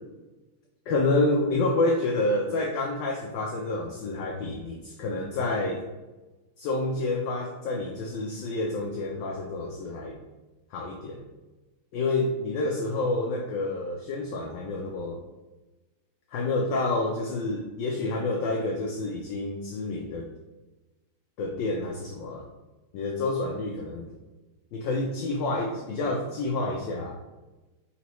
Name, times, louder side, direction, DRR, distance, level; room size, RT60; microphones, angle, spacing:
voice 1, 0.9-5.8 6.6-10.2 10.7-11.2 11.9-15.2 16.3-20.3 21.4-22.5 22.9-24.1 24.7-27.2, left 2 dB, 75° left, 0 dB, 1.0 m, -28 dB
4.1 x 4.0 x 3.0 m, 1.1 s
omnidirectional pair, 2.4 m